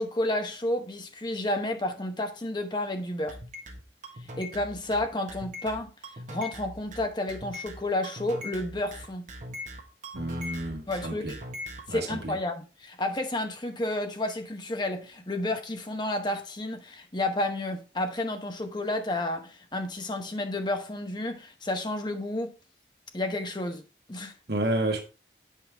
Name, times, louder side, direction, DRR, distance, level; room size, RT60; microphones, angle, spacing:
voice 1, 0.0-3.4 4.4-5.9 6.3-9.3 10.9-11.3 11.9-22.5 23.1-23.8 24.1-24.3, left 1 dB, 25° left, 0.9 m, -31 dB
sound 1, 3.3-11.9, left 1 dB, 45° right, 1.3 m, -41 dB
voice 2, 10.1-11.4 11.9-12.4 24.5-25.0, right 1 dB, 65° right, 1.6 m, -30 dB
8.3 x 5.3 x 3.4 m
head